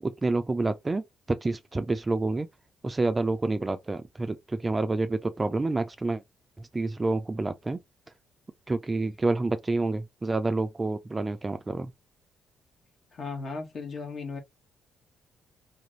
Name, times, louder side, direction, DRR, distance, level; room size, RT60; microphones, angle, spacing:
voice 1, 0.0-2.5 2.8-6.2 6.6-7.8 8.7-11.9, right 2 dB, 25° right, 0.4 m, -28 dB
voice 2, 13.1-14.4, left 4 dB, 50° left, 1.1 m, -36 dB
2.6 x 2.5 x 3.0 m
cardioid pair, 90°, 0 cm